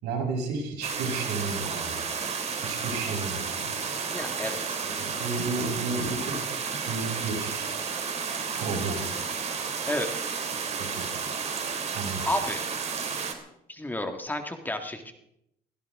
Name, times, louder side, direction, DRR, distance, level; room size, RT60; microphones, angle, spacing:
voice 1, 0.0-2.0 2.6-3.7 4.8-6.4 6.9-7.8 8.5-9.0 10.7-11.1 11.9-12.2, right 4 dB, 90° right, -1 dB, 6.1 m, -32 dB
sound 1, 0.8-13.3, right 5 dB, 40° right, 2.8 m, -32 dB
voice 2, 4.1-4.8 9.8-10.1 12.2-12.6 13.7-15.1, left 1 dB, 10° left, 6 dB, 1.7 m, -31 dB
22.0 x 16.0 x 3.6 m, 0.79 s
cardioid pair, 110°, 17 cm